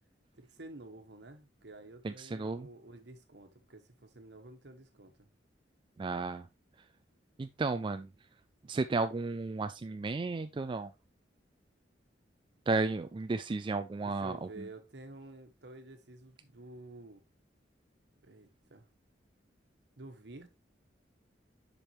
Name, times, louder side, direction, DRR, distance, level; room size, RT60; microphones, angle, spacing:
voice 1, 0.4-5.3 14.0-17.2 18.2-18.9 20.0-20.5, right 2 dB, 70° right, 1.3 m, -50 dB
voice 2, 2.0-2.7 6.0-6.5 7.4-8.1 8.7-10.9 12.7-14.7, right 3 dB, 30° right, 0.3 m, -33 dB
7.2 x 5.3 x 3.1 m
head